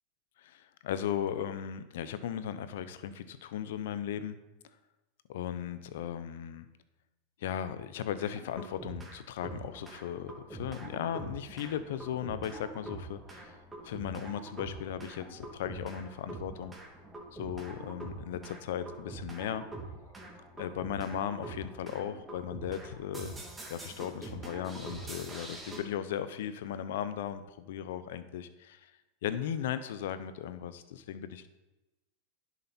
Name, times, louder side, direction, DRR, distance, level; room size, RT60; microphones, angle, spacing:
voice 1, 0.4-4.4 5.3-6.7 7.4-13.5 13.8-16.7 17.3-19.6 20.6-23.3 23.7-28.9 29.2-31.5, left 9 dB, 70° left, 12 dB, 0.8 m, -37 dB
sound 1, 8.2-9.2 9.4-25.8, right 2 dB, 15° right, 2.9 m, -44 dB
10.5 x 7.0 x 4.5 m, 1.0 s
hypercardioid pair, 105°, 0 cm